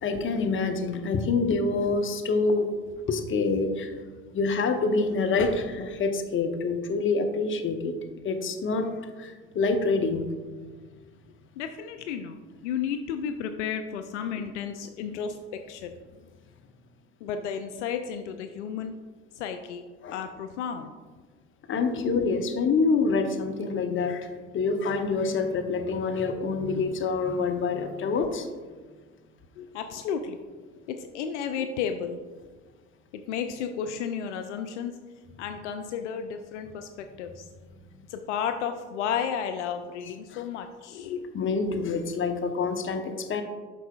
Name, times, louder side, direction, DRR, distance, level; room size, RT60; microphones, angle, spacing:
voice 1, 0.0-2.7 3.1-4.0 4.3-7.9 8.2-8.9 9.2-10.2 15.1-15.2 20.0-20.2 21.7-24.3 24.5-28.5 40.3-40.4 41.3-43.4, left 4 dB, 35° left, 6 dB, 0.9 m, -26 dB
voice 2, 11.6-15.9 17.2-18.9 19.4-19.8 20.1-20.9 21.9-22.4 29.6-30.4 30.9-32.2 33.1-34.9 35.4-37.4 38.1-41.3 41.7-41.8, left 7 dB, 75° left, 8 dB, 0.5 m, -33 dB
9.0 x 6.0 x 2.3 m, 1.4 s
figure-of-eight pair, 60°, 36 cm